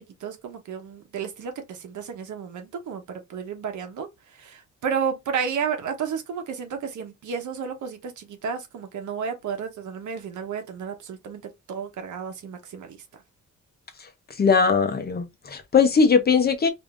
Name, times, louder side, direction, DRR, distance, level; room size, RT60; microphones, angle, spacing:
voice 1, 0.0-4.1 4.4-11.4 11.7-13.0, right 6 dB, 75° right, 1.1 m, -32 dB
voice 2, 14.4-16.7, left 5 dB, 30° left, 0.6 m, -20 dB
5.0 x 2.6 x 2.5 m
wide cardioid pair, 180°, 30 cm